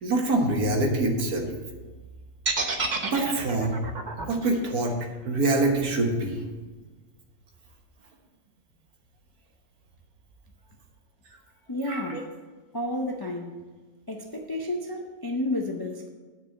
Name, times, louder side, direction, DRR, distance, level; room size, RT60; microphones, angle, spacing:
voice 1, 0.0-1.5 3.0-3.8 4.2-5.0 5.3-6.4 11.9-12.2, right 2 dB, 75° right, 1 dB, 1.9 m, -25 dB
sound 1, 2.5-6.5, right 3 dB, 35° right, 0.8 m, -31 dB
voice 2, 11.7-12.3 12.7-13.6 14.1-16.1, left 1 dB, 30° left, 2 dB, 0.4 m, -31 dB
9.4 x 4.8 x 7.8 m, 1.4 s
omnidirectional pair, 1.6 m